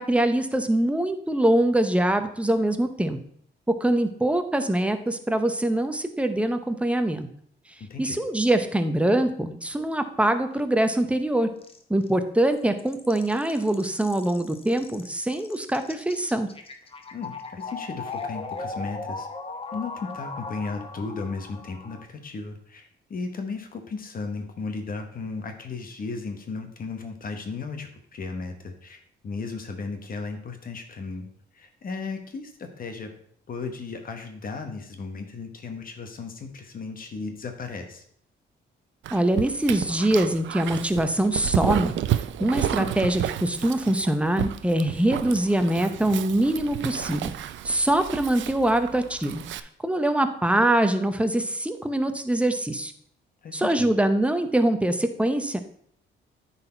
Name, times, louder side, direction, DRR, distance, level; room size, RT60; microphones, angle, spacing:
voice 1, 0.0-3.2 3.8-7.3 8.0-11.5 11.9-16.5 39.1-41.9 42.4-47.3 47.6-49.4 49.8-52.9 53.5-55.6, right 1 dB, 5° right, 8 dB, 0.8 m, -23 dB
voice 2, 7.8-8.2 17.1-19.3 19.7-31.3 31.5-33.1 33.5-38.0 53.4-53.9, left 4 dB, 45° left, 5 dB, 1.2 m, -35 dB
sound 1, 10.5-10.6 11.0-11.1 11.3-11.4 11.6-12.1 12.5-22.0, left 3 dB, 30° left, 0.9 m, -38 dB
Dog, 39.0-49.6, right 12 dB, 70° right, 0.5 m, -31 dB
9.6 x 4.2 x 4.4 m, 0.65 s
cardioid pair, 90°, 20 cm